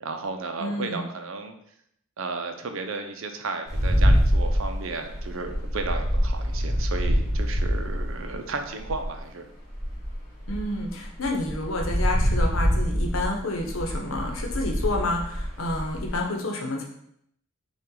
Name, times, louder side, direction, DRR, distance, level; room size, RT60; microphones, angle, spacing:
voice 1, 0.0-1.6 2.2-9.5, right 3 dB, 70° right, 6 dB, 0.6 m, -34 dB
voice 2, 0.6-1.0 10.5-16.8, left 2 dB, 75° left, 1 dB, 0.9 m, -29 dB
sound 1, 3.7-9.2 9.7-16.2, equal, 15° left, 1.8 m, -25 dB
5.6 x 2.4 x 3.8 m, 0.72 s
head